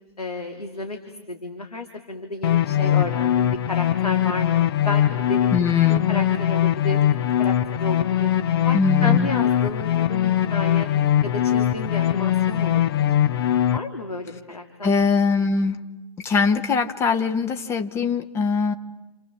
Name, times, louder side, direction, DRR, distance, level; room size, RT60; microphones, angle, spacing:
voice 1, 0.2-1.0 1.3-5.6 5.9-7.0 7.4-8.3 8.6-10.9 11.2-13.1 13.7-14.9, left 2 dB, 80° left, 3 dB, 3.0 m, -32 dB
sound 1, 2.4-13.8, left 11 dB, 40° left, 1.0 m, -21 dB
voice 2, 5.5-6.1 8.7-9.3 14.8-15.8 16.2-18.7, left 5 dB, 15° left, 7 dB, 1.0 m, -22 dB
30.0 x 27.5 x 7.2 m, 1.1 s
figure-of-eight pair, 125°, 19 cm